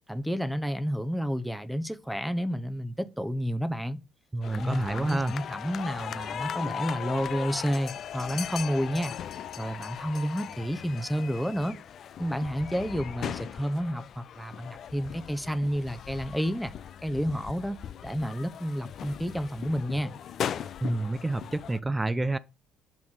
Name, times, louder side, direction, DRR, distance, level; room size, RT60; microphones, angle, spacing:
voice 1, 0.1-4.0 4.5-9.1 9.6-11.8 12.2-16.7 17.0-20.1, equal, ahead, 0.8 m, -30 dB
voice 2, 4.3-5.3 20.8-22.4, right 2 dB, 20° right, 0.5 m, -28 dB
sound 1, 4.4-21.8, left 9 dB, 60° left, 0.4 m, -38 dB
8.7 x 3.5 x 6.4 m
hypercardioid pair, 50°, 0 cm